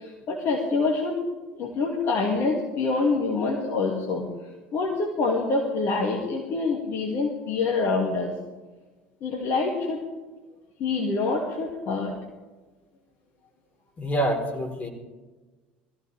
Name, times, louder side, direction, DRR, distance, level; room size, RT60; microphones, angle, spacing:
voice 1, 0.3-1.2 1.6-4.2 4.7-8.3 9.2-10.0 10.8-12.1, left 3 dB, 45° left, -1 dB, 2.6 m, -26 dB
voice 2, 14.0-14.9, right 1 dB, 25° left, 1 dB, 4.4 m, -26 dB
21.5 x 15.0 x 3.6 m, 1.2 s
figure-of-eight pair, 65°, 6 cm